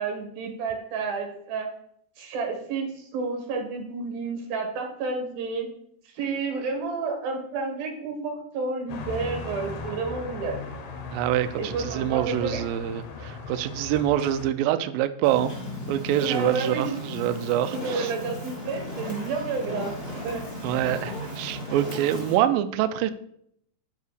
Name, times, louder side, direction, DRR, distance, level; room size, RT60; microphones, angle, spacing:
voice 1, 0.0-1.7 2.2-5.7 6.1-10.6 11.6-12.6 16.2-17.0 17.7-19.9 20.2-20.5, right 4 dB, 65° right, 4 dB, 3.5 m, -30 dB
sound 1, 8.9-14.5, left 3 dB, 75° left, 1.7 m, -38 dB
voice 2, 11.1-15.5 15.9-18.1 20.6-23.1, right 12 dB, 85° right, 10 dB, 2.0 m, -25 dB
Fire, 15.2-22.4, left 1 dB, 15° left, 2.4 m, -36 dB
8.3 x 4.8 x 6.7 m, 0.70 s
omnidirectional pair, 4.6 m